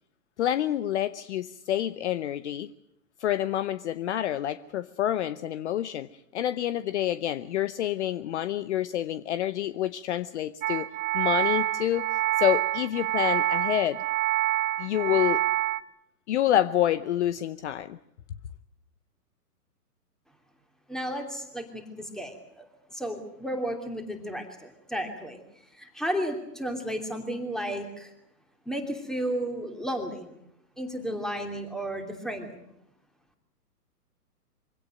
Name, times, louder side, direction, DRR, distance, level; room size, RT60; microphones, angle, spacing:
voice 1, 0.4-2.7 3.2-6.1 6.3-10.9 11.1-12.1 12.4-14.0 14.8-15.4 16.3-18.0, left 11 dB, 45° left, 0.8 m, -27 dB
sound 1, 10.6-15.8, right 13 dB, 55° right, 1.1 m, -27 dB
voice 2, 20.9-22.6 22.9-25.4 25.7-28.1 28.6-30.3 30.8-32.6, equal, ahead, 2.9 m, -33 dB
24.0 x 17.0 x 9.2 m
hypercardioid pair, 135°, 48 cm